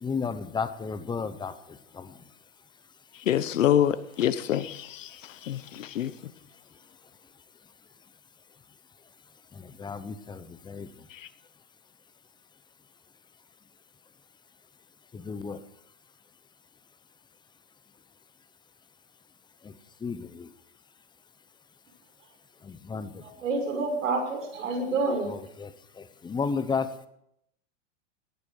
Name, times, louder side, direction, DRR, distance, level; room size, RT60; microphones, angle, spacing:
voice 1, 0.0-1.5 1.9-2.1 9.6-10.9 15.1-15.6 20.0-20.5 22.6-23.1 25.6-25.7 26.0-27.1, left 5 dB, 10° left, 12 dB, 1.0 m, -33 dB
voice 2, 3.3-6.1 11.1-11.3, left 10 dB, 90° left, 15 dB, 1.1 m, -26 dB
voice 3, 23.2-25.3, right 3 dB, 90° right, 3 dB, 6.5 m, -28 dB
18.5 x 9.7 x 6.7 m, 0.76 s
hypercardioid pair, 130°, 37 cm